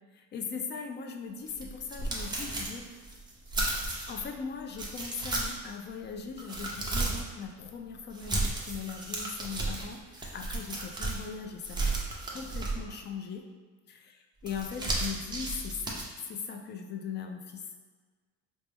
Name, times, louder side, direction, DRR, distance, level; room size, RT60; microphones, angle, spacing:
voice 1, 0.1-3.1 4.1-12.0 12.3-13.5 13.9-14.2 14.4-16.0 16.3-17.8, left 6 dB, 35° left, 4 dB, 0.4 m, -39 dB
sound 1, 1.5-4.2 4.7-5.7 6.1-7.3 8.1-11.3 11.6-13.0 14.4-16.0, right 2 dB, 15° right, 0.6 m, -34 dB
4.4 x 2.1 x 3.4 m, 1.4 s
cardioid pair, 130°, 33 cm